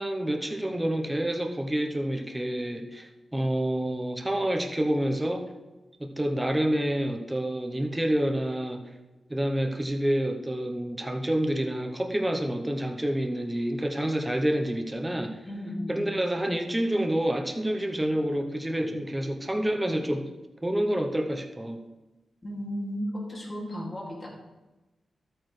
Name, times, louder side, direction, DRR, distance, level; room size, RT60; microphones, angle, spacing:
voice 1, 0.0-5.4 6.0-8.8 9.3-15.4 15.9-20.3 20.6-21.8, right 1 dB, 10° right, 4 dB, 0.8 m, -28 dB
voice 2, 15.5-16.1 22.4-24.3, equal, 20° left, -3 dB, 2.3 m, -34 dB
12.5 x 8.8 x 3.2 m, 1.1 s
wide cardioid pair, 165°, 0 cm